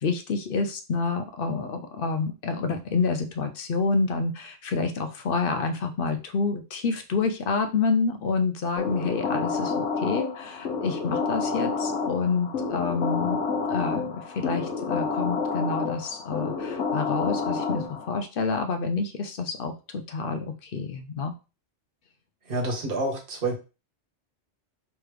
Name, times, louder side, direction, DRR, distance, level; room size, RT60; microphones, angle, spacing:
voice 1, 0.0-13.4 13.7-21.3, left 4 dB, 60° left, 7 dB, 0.7 m, -28 dB
sound 1, 8.8-18.2, left 4 dB, 85° left, 1.2 m, -29 dB
voice 2, 22.5-23.6, right 2 dB, 50° right, 1 dB, 1.2 m, -28 dB
3.5 x 3.1 x 3.2 m, 0.31 s
omnidirectional pair, 1.2 m